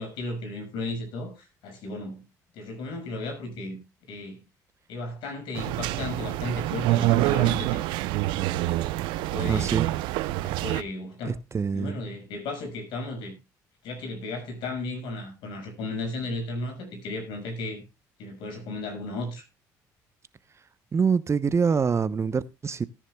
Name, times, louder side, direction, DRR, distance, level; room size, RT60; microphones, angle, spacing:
voice 1, 0.0-2.2 2.5-3.8 4.1-4.4 4.9-7.8 8.5-8.7 9.2-9.7 10.4-11.4 11.7-13.4 13.8-17.8 18.2-19.4, left 2 dB, 75° left, 6.4 m, -35 dB
sound 1, 5.6-10.8, right 16 dB, 80° right, 0.8 m, -26 dB
voice 2, 9.5-9.9 11.2-12.0 20.9-22.9, right 5 dB, 35° right, 0.9 m, -25 dB
18.5 x 10.0 x 2.3 m
supercardioid pair, 65°, 8 cm